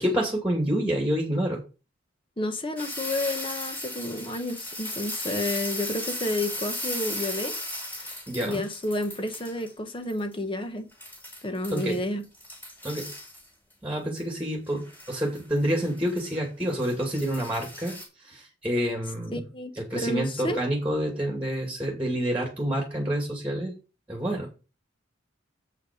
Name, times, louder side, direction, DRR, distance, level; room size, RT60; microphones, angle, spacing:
voice 1, 0.0-1.6 8.3-8.6 11.7-12.0 12.8-13.1 13.8-18.0 18.2-19.4 19.8-23.7 24.1-24.5, equal, 5° right, 2.3 m, -28 dB
voice 2, 2.4-7.6 8.0-10.9 11.4-12.2 19.3-20.6, left 1 dB, 25° left, 1.2 m, -31 dB
sound 1, 2.8-9.7 10.1-10.2 10.9-12.0 12.3-13.5 14.2-14.3 14.7-18.0, left 1 dB, 10° left, 3.3 m, -36 dB
8.0 x 5.7 x 5.2 m
head